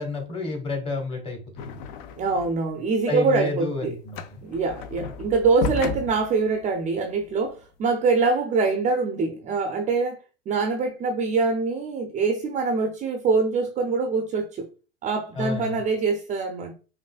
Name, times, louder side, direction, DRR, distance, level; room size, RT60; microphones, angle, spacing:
voice 1, 0.0-1.8 3.1-4.4 15.3-15.8, left 3 dB, 15° left, 1.3 m, -30 dB
sound 1, 1.6-2.7 3.0-7.6, left 5 dB, 50° left, 0.6 m, -34 dB
voice 2, 2.2-3.9 4.4-10.2 10.5-14.7 15.0-16.7, right 4 dB, 25° right, 0.5 m, -24 dB
5.3 x 2.6 x 2.4 m
hypercardioid pair, 95°, 33 cm